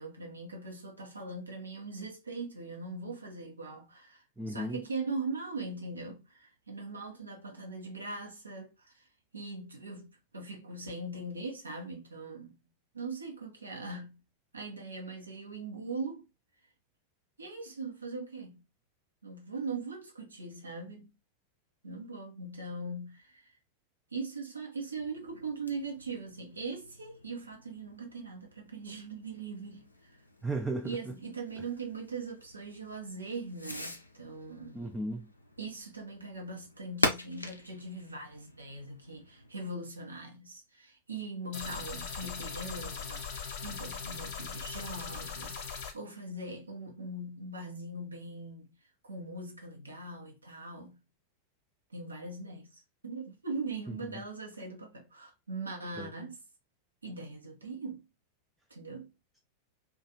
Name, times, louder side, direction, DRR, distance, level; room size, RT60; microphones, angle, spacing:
voice 1, 0.0-9.0 9.3-12.6 12.9-14.2 14.5-16.2 17.4-18.6 19.2-21.1 21.8-23.4 24.1-30.2 30.8-34.8 35.6-48.8 49.0-51.0 51.9-56.4 57.0-58.0 58.7-59.1, right 3 dB, 75° right, 0.7 m, -41 dB
voice 2, 4.4-4.8 30.4-31.1 34.7-35.3 53.9-54.2 56.0-56.1, right 2 dB, 5° right, 0.4 m, -35 dB
Fireworks, 24.9-39.5, left 1 dB, 85° left, 0.4 m, -42 dB
sound 1, 41.5-45.9, left 6 dB, 50° left, 0.7 m, -40 dB
2.4 x 2.3 x 2.8 m
figure-of-eight pair, 90°, 0 cm